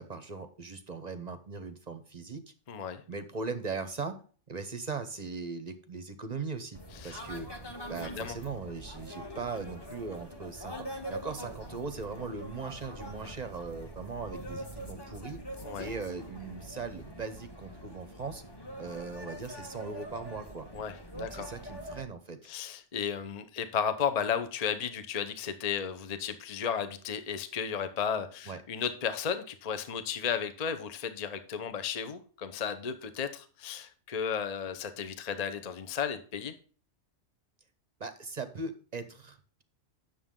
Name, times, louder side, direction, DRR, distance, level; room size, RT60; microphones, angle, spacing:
voice 1, 0.0-2.5 3.1-4.2 4.5-6.8 7.0-7.5 7.9-15.4 15.8-18.4 18.8-20.7 21.2-22.5 28.5-28.6 38.0-39.6, right 4 dB, 40° right, 10 dB, 0.8 m, -39 dB
voice 2, 2.7-3.0 6.9-7.2 7.9-8.4 15.6-15.9 20.7-21.5 22.4-36.5, left 7 dB, 40° left, 10 dB, 0.7 m, -34 dB
sound 1, 6.7-22.0, right 1 dB, 20° left, 1.3 m, -44 dB
9.3 x 6.9 x 3.7 m, 0.42 s
omnidirectional pair, 1.3 m